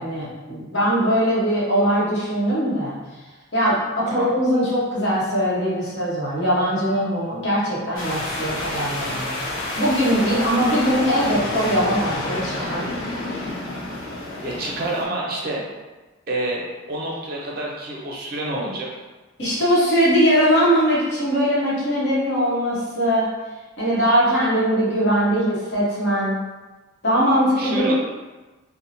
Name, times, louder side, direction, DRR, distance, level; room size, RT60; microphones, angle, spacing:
voice 1, 0.0-2.9 3.5-9.3 9.7-12.9 19.4-23.2 23.8-26.4 27.0-27.9, equal, 55° left, -8 dB, 1.0 m, -21 dB
sound 1, 8.0-15.1, left 1 dB, 75° left, 0.6 m, -29 dB
voice 2, 14.4-15.6 16.3-18.9 27.6-27.9, right 2 dB, 45° right, -3 dB, 0.5 m, -28 dB
2.7 x 2.1 x 2.8 m, 1.2 s
head